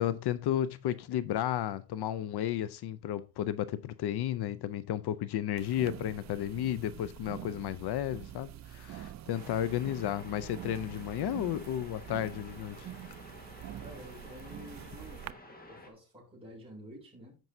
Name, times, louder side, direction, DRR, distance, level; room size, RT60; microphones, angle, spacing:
voice 1, 0.0-12.8, left 11 dB, 75° left, 0.6 m, -33 dB
sound 1, 5.6-15.3, right 11 dB, 45° right, 0.4 m, -46 dB
sound 2, 9.3-15.9, left 1 dB, 20° left, 1.6 m, -52 dB
voice 2, 13.8-17.4, equal, 15° right, 5.3 m, -50 dB
14.0 x 5.3 x 2.7 m
cardioid pair, 135°, 40 cm